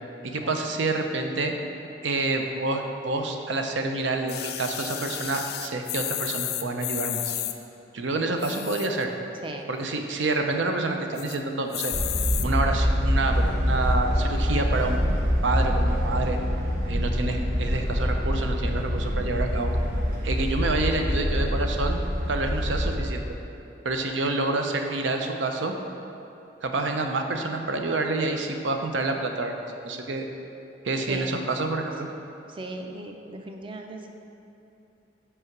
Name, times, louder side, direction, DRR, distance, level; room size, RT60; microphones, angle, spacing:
voice 1, 0.2-1.5 2.0-7.4 7.9-9.1 9.7-11.9 12.4-15.0 15.4-16.4 16.9-19.7 20.2-22.0 22.3-23.2 23.8-25.7 26.6-30.2 30.8-32.1, right 2 dB, 80° right, 4 dB, 0.6 m, -28 dB
sound 1, 4.3-7.5 8.3-9.0 9.5-9.6 9.8-9.9 10.2-10.6 11.2-11.4 11.7-12.5 13.2-13.3, left 13 dB, 55° left, 0.3 m, -32 dB
sound 2, 11.9-23.0, equal, 45° right, 1.0 m, -25 dB
voice 2, 27.8-28.2 31.1-31.3 32.5-34.1, right 2 dB, 25° right, 3 dB, 0.5 m, -38 dB
5.5 x 4.8 x 6.0 m, 2.8 s
head